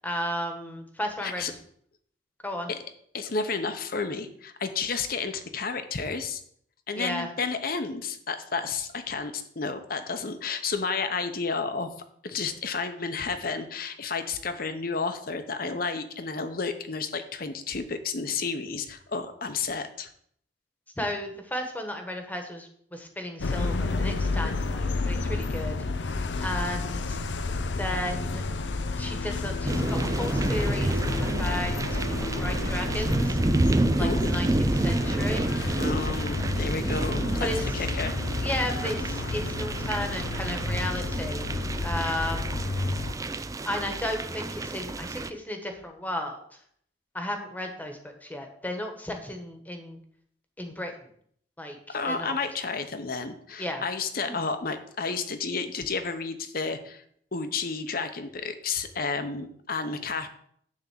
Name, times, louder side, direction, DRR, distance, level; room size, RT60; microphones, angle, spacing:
voice 1, 0.0-1.6 2.4-2.7 7.0-7.3 21.0-25.8 26.1-27.2 27.8-28.4 29.0-33.4 33.9-35.5 37.4-37.8 38.4-41.4 41.8-42.5 43.6-46.4 47.1-50.0 50.6-50.9 51.6-52.4 53.6-53.8 54.2-54.4, left 1 dB, 10° left, 4 dB, 1.3 m, -34 dB
voice 2, 3.1-6.4 6.9-11.9 12.2-20.1 34.0-34.4 35.8-37.5 37.7-38.2 51.9-57.0 57.3-60.3, left 4 dB, 55° left, 9 dB, 0.9 m, -31 dB
sound 1, 23.4-43.1, left 3 dB, 90° left, 0.6 m, -31 dB
sound 2, 29.7-45.3, right 2 dB, 20° right, 0.4 m, -29 dB
10.5 x 3.7 x 7.4 m, 0.64 s
head